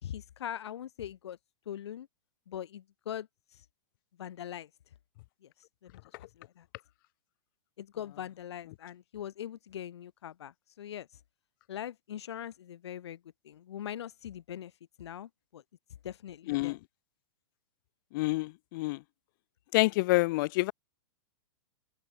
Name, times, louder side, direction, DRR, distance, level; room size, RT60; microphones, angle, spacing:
voice 1, 0.0-1.4 1.7-2.1 2.5-3.7 4.2-4.7 5.4-6.7 7.8-11.2 11.7-15.6 16.0-16.8, left 10 dB, 75° left, 3.6 m, -42 dB
voice 2, 18.1-19.0 19.7-20.7, left 21 dB, 50° left, 3.0 m, -27 dB
open air
hypercardioid pair, 140°, 14 cm